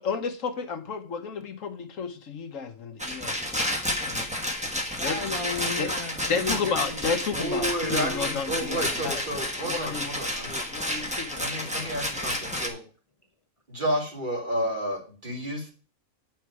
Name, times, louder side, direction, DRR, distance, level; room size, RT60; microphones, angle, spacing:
voice 1, 0.0-3.7 4.0-4.3 5.0-5.2 5.8-5.9 6.3-10.0 10.7-11.9, left 5 dB, 80° left, 7 dB, 1.4 m, -32 dB
Rattle, 3.0-12.7, left 1 dB, 5° right, 1.3 m, -31 dB
voice 2, 4.9-7.0, left 4 dB, 30° left, 3 dB, 0.9 m, -33 dB
voice 3, 7.3-10.6 11.4-12.8 13.7-15.7, equal, 40° right, 0 dB, 2.5 m, -31 dB
8.5 x 5.9 x 4.7 m, 0.37 s
omnidirectional pair, 1.3 m